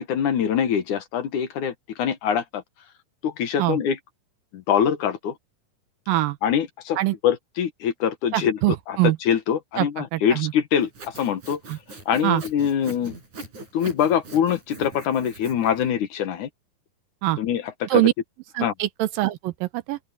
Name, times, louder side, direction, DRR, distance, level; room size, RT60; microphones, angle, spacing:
voice 1, 0.0-2.6 3.2-4.0 4.5-5.3 6.4-7.0 7.2-8.6 8.9-11.6 12.1-13.1 13.7-16.5 17.4-18.1 18.6-18.7, left 8 dB, 65° left, 2.7 m, -24 dB
voice 2, 6.1-6.4 7.0-7.2 8.3-9.2 9.8-10.5 11.7-11.8 12.2-12.4 17.2-17.4 17.9-18.1 18.6-20.0, right 16 dB, 80° right, 2.6 m, -23 dB
Sawing, 10.8-15.9, right 2 dB, 55° right, 9.5 m, -42 dB
open air
omnidirectional pair, 4.1 m